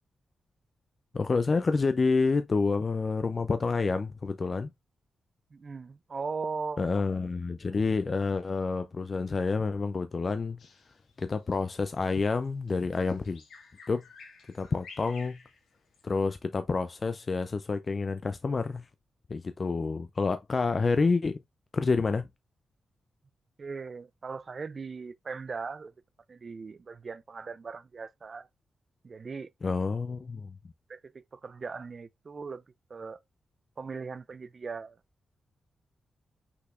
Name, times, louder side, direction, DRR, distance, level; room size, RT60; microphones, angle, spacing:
voice 1, 1.1-4.7 6.8-10.6 11.2-13.4 13.9-14.0 14.5-15.4 16.0-18.8 19.3-21.4 21.7-22.3 29.6-30.5, left 4 dB, 35° left, 0.3 m, -28 dB
voice 2, 5.5-6.9 23.6-25.9 26.3-28.5 29.0-29.5 30.9-32.6 32.9-33.2 33.8-35.0, right 4 dB, 40° right, 0.3 m, -39 dB
Bird vocalization bird call bird song, 10.6-16.1, left 4 dB, 90° left, 1.7 m, -53 dB
5.6 x 4.0 x 2.4 m
wide cardioid pair, 110°, 0 cm